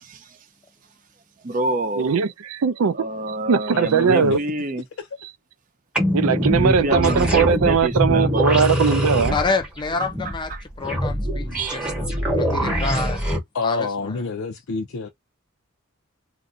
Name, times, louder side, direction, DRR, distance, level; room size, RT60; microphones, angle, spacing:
voice 1, 1.4-2.2 2.9-4.8 6.4-8.7 10.0-10.6 11.5-11.8, right 2 dB, 40° right, 0.6 m, -27 dB
voice 2, 2.0-3.1 3.5-4.4 6.1-9.4, right 6 dB, 85° right, 0.5 m, -19 dB
voice 3, 3.7-4.4 5.0-5.1 13.5-15.1, left 4 dB, 75° left, 0.5 m, -28 dB
sound 1, 5.9-13.4, equal, 5° right, 1.0 m, -23 dB
voice 4, 9.3-10.5 10.8-11.9 12.4-13.2 13.6-13.9, left 4 dB, 20° left, 0.4 m, -27 dB
2.5 x 2.2 x 3.8 m
head